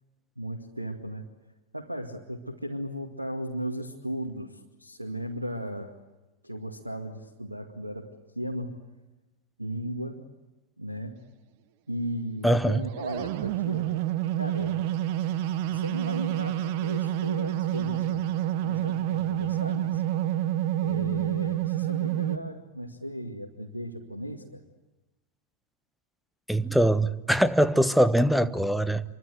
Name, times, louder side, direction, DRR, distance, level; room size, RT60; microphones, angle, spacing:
voice 1, 0.4-1.3 1.7-6.0 6.4-8.8 9.6-10.2 10.8-11.2 11.9-13.9 14.4-14.8 15.6-18.2 18.6-20.0 20.8-24.6, equal, 85° right, 2.2 m, -36 dB
voice 2, 12.4-12.8 26.5-29.0, right 1 dB, ahead, 1.1 m, -22 dB
sound 1, 12.6-22.4, right 12 dB, 45° right, 1.1 m, -28 dB
28.5 x 24.0 x 8.0 m
figure-of-eight pair, 90°, 0 cm